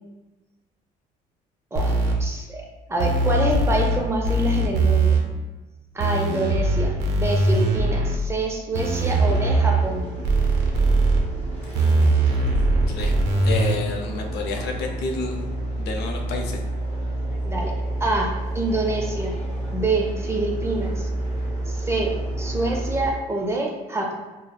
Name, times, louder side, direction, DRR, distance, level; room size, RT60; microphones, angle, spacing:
voice 1, 1.7-5.2 5.9-10.1 17.5-17.7 18.0-19.4 19.7-21.1 21.7-24.1, right 2 dB, 15° right, 0 dB, 0.4 m, -26 dB
sound 1, 1.8-2.1 3.0-4.0 4.2-5.2 6.0-8.2 8.7-9.8 10.2-11.2 11.7-13.8, right 2 dB, 80° right, 0.5 m, -20 dB
sound 2, 8.8-23.1, right 1 dB, 15° left, 1.3 m, -30 dB
voice 2, 13.4-15.4 15.8-16.6, left 4 dB, 75° left, 2 dB, 0.5 m, -29 dB
3.2 x 2.0 x 2.2 m, 1.2 s
cardioid pair, 110°, 17 cm